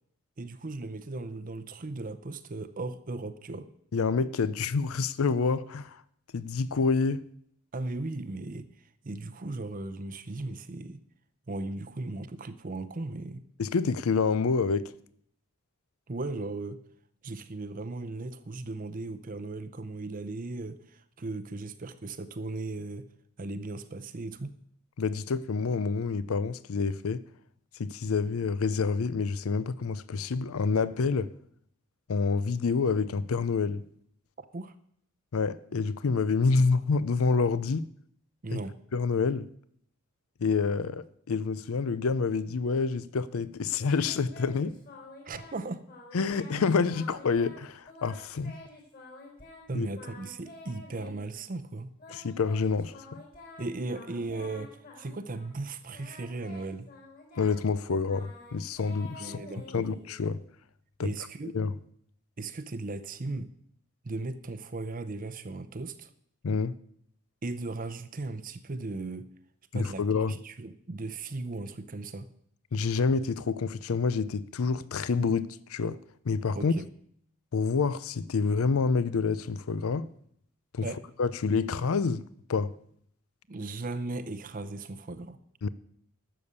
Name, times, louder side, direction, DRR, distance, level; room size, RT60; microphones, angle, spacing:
voice 1, 0.4-3.7 7.7-8.7 9.0-11.0 11.5-13.4 16.1-16.8 17.2-23.1 23.4-24.5 34.4-34.7 38.4-38.8 45.2-45.8 49.7-51.9 53.6-56.9 59.2-59.9 61.0-61.6 62.4-63.5 64.0-66.1 67.4-69.3 69.7-72.3 76.5-76.9 80.8-81.0 83.5-85.4, right 2 dB, 40° right, 0.6 m, -37 dB
voice 2, 3.9-6.0 6.3-7.2 13.6-14.9 25.0-27.2 27.8-31.3 32.1-33.8 35.3-37.9 38.5-38.6 38.9-39.5 40.4-44.8 46.1-48.6 49.7-49.9 52.1-53.2 57.4-59.4 59.7-60.4 61.0-61.1 61.4-61.7 66.4-66.7 69.7-70.4 72.7-76.0 76.2-76.7 77.5-80.1 80.7-80.9 81.2-82.2 82.5-82.7 85.6-85.7, left 4 dB, 75° left, 0.5 m, -28 dB
Singing, 43.8-45.6 45.9-46.6 46.9-47.6 47.9-49.6 49.9-51.4 52.0-55.6 55.9-60.3, left 2 dB, 40° left, 3.9 m, -49 dB
12.5 x 7.0 x 8.1 m
head